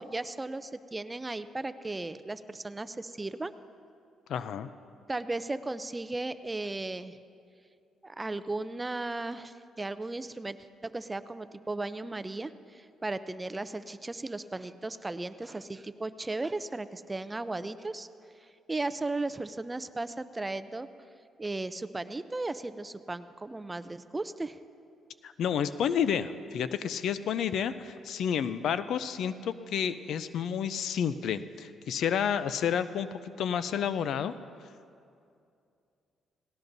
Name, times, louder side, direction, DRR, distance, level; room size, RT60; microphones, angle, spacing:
voice 1, 0.0-3.5 5.1-7.2 8.0-10.6 10.8-18.1 18.4-20.9 21.4-24.6, right 2 dB, 20° right, 13 dB, 0.5 m, -36 dB
voice 2, 4.3-4.7 25.2-34.3, left 8 dB, 70° left, 13 dB, 0.4 m, -30 dB
18.0 x 17.5 x 2.7 m, 2.5 s
cardioid pair, 90°, 0 cm